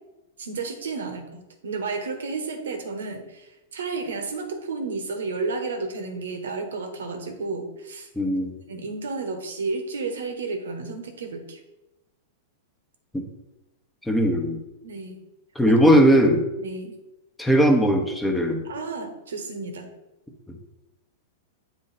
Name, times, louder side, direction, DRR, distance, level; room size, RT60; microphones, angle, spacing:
voice 1, 0.4-8.1 8.7-11.6 14.8-15.2 16.6-17.0 18.6-19.9, right 4 dB, 90° right, 6 dB, 1.1 m, -32 dB
voice 2, 8.2-8.6 13.1-13.3 14.1-14.6 15.5-16.4 17.4-18.6, equal, 5° left, 2 dB, 1.0 m, -19 dB
8.1 x 3.3 x 4.2 m, 1.0 s
hypercardioid pair, 130°, 0 cm